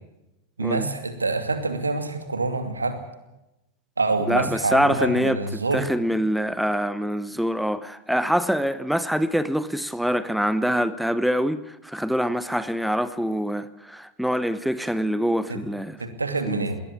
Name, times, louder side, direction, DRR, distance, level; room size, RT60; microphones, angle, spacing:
voice 1, 0.6-3.0 4.0-5.8 15.5-15.6 16.0-16.8, right 3 dB, 80° right, 2.6 m, -26 dB
voice 2, 4.3-16.0 16.4-16.6, equal, ahead, 0.9 m, -25 dB
21.0 x 18.0 x 8.6 m
figure-of-eight pair, 90°, 0 cm